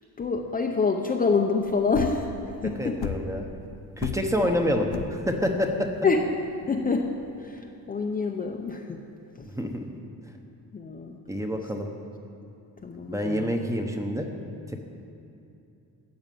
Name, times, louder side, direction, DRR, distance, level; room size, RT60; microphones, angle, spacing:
voice 1, 0.2-3.0 4.4-4.5 6.0-6.3 6.7-7.1 7.4-9.0 9.4-9.5 10.7-11.2 12.8-13.5, left 4 dB, 20° left, 1 dB, 0.6 m, -27 dB
sound 1, 1.7-7.6, left 8 dB, 80° left, 0.9 m, -35 dB
voice 2, 2.8-3.5 4.0-5.9 9.4-9.9 11.3-11.9 13.1-14.3, equal, 10° right, 3 dB, 0.9 m, -27 dB
14.5 x 7.2 x 9.1 m, 2.7 s
cardioid pair, 180°, 38 cm